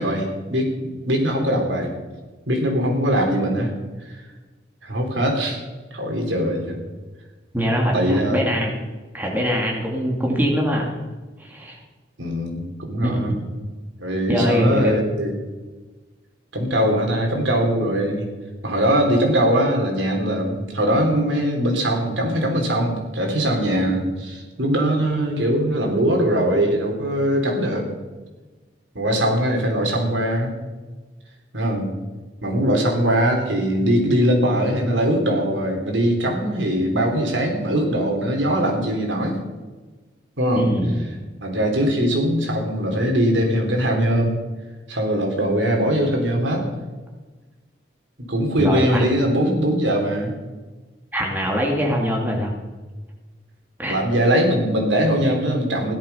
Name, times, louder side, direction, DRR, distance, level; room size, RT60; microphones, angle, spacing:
voice 1, 0.0-1.9 2.5-3.7 4.1-4.2 4.8-5.6 5.9-6.8 7.9-8.4 12.2-13.4 14.0-15.5 16.5-18.3 18.6-27.9 29.0-30.5 31.5-31.9 32.4-39.4 40.4-40.7 41.4-44.4 44.9-46.7 48.3-50.3 53.9-55.9, equal, 85° right, 2 dB, 3.7 m, -21 dB
voice 2, 7.5-8.9 9.1-10.9 11.4-11.8 13.1-13.4 14.3-15.0 40.6-41.0 48.6-49.0 51.1-52.5 53.8-54.0, equal, 10° right, -1 dB, 2.4 m, -22 dB
16.5 x 11.5 x 5.7 m, 1.3 s
head